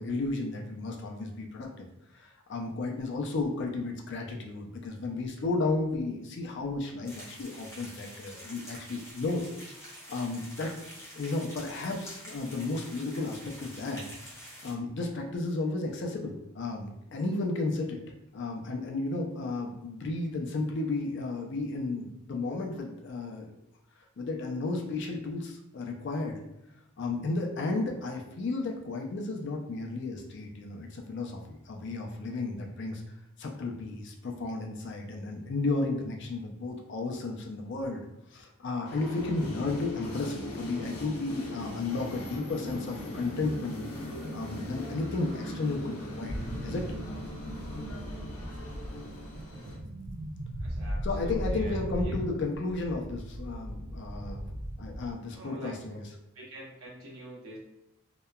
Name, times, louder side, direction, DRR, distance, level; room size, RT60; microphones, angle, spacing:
voice 1, 0.0-1.9 2.1-9.4 10.1-10.7 11.1-18.0 18.3-23.5 24.2-26.4 27.0-33.0 33.4-43.8 44.3-46.8 51.0-54.4 54.8-56.1, left 3 dB, 50° left, 2 dB, 0.4 m, -33 dB
sound 1, 7.0-14.7, equal, 15° left, 0.6 m, -47 dB
sound 2, 38.8-49.8, left 1 dB, 85° left, 0.7 m, -39 dB
sound 3, 46.3-55.1, right 1 dB, 45° right, 0.4 m, -37 dB
voice 2, 50.6-52.3 55.3-56.0 56.3-57.6, right 1 dB, 75° right, -4 dB, 0.8 m, -46 dB
2.8 x 2.2 x 2.2 m, 0.86 s
head